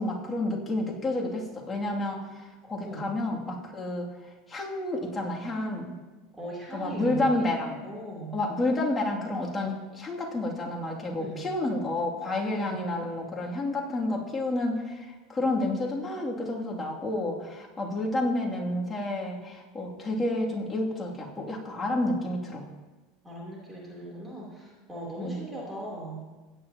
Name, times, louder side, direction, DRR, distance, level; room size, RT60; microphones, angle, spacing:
voice 1, 0.0-4.1 4.5-5.9 6.7-7.8 8.3-22.7 25.2-25.4, left 2 dB, 20° left, -2 dB, 2.6 m, -30 dB
voice 2, 6.3-7.4 7.8-8.4 11.1-11.4 12.5-12.8 23.2-26.3, right 1 dB, 10° right, -4 dB, 3.3 m, -39 dB
16.5 x 9.8 x 2.9 m, 1.2 s
hypercardioid pair, 100°, 0 cm